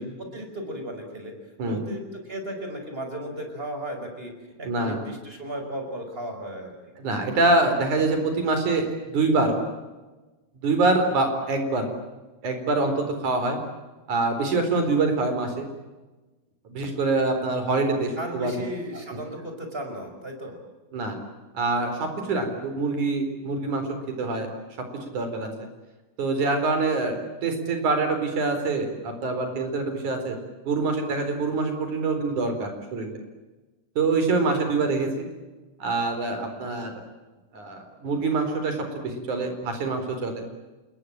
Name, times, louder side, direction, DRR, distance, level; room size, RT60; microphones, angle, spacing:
voice 1, 0.0-1.3 1.7-4.3 4.6-6.7 18.2-20.6, right 1 dB, 15° right, 4 dB, 5.6 m, -35 dB
voice 2, 4.6-5.0 7.0-9.6 10.6-11.9 12.4-13.6 14.1-15.7 16.7-18.5 20.9-21.2 21.5-23.9 24.2-24.5 25.1-25.5 26.2-27.1 27.4-30.4 30.6-33.2 34.0-35.3 35.8-37.0 37.5-40.4, right 3 dB, 70° right, 6 dB, 5.7 m, -25 dB
28.0 x 21.5 x 8.8 m, 1.2 s
omnidirectional pair, 3.6 m